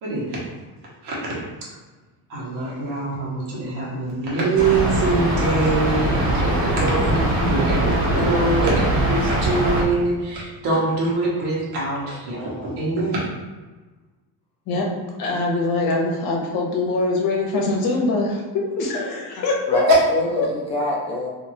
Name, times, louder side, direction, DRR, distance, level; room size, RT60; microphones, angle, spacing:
voice 1, 0.0-0.4 1.0-1.3 2.3-13.2, right 3 dB, 75° right, -6 dB, 1.2 m, -24 dB
sound 1, 4.6-9.8, right 1 dB, 40° right, 1.1 m, -21 dB
voice 2, 12.2-12.7 19.7-21.3, left 1 dB, 15° left, -4 dB, 0.6 m, -27 dB
voice 3, 15.2-19.8 20.4-20.5, left 3 dB, 60° left, -1 dB, 0.9 m, -23 dB
3.0 x 2.8 x 2.7 m, 1.2 s
cardioid pair, 165°, 40 cm